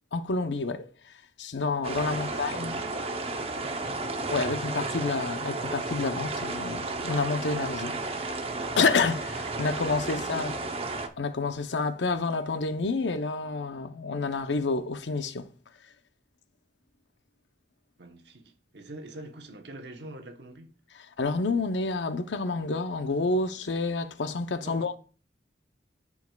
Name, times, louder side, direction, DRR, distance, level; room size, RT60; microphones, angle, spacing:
voice 1, 0.1-0.9 1.4-2.7 4.3-8.0 8.8-10.7 11.2-15.5 21.2-25.0, left 3 dB, 90° left, 0.7 m, -29 dB
sound 1, 1.8-11.1, right 3 dB, 35° right, 0.7 m, -33 dB
voice 2, 1.9-4.3 18.0-20.7 24.6-24.9, right 2 dB, 75° right, 1.0 m, -46 dB
13.5 x 4.8 x 2.3 m
head